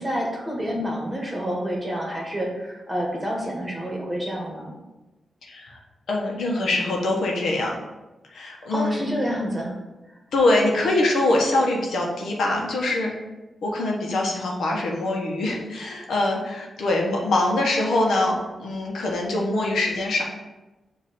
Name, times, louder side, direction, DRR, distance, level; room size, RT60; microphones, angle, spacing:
voice 1, 0.0-4.7 8.7-9.7, equal, 15° right, -2 dB, 1.6 m, -28 dB
voice 2, 5.4-5.8 6.1-7.8 8.3-9.0 10.3-13.1 13.6-20.2, left 2 dB, 80° left, -1 dB, 1.2 m, -23 dB
6.7 x 2.9 x 5.2 m, 1.1 s
wide cardioid pair, 115°, 0 cm